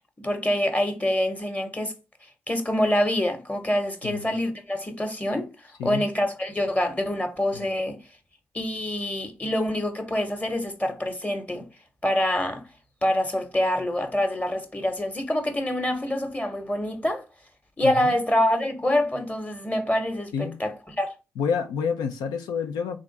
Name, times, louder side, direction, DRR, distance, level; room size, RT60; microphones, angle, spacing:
voice 1, 0.2-1.9 2.5-5.5 5.8-8.0 8.5-11.7 12.0-12.6 13.0-17.2 17.8-21.1, left 1 dB, 20° left, 1.0 m, -26 dB
voice 2, 17.8-18.1 20.3-20.5 21.4-23.0, left 6 dB, 90° left, 0.5 m, -28 dB
3.2 x 2.5 x 3.9 m
supercardioid pair, 45°, 7 cm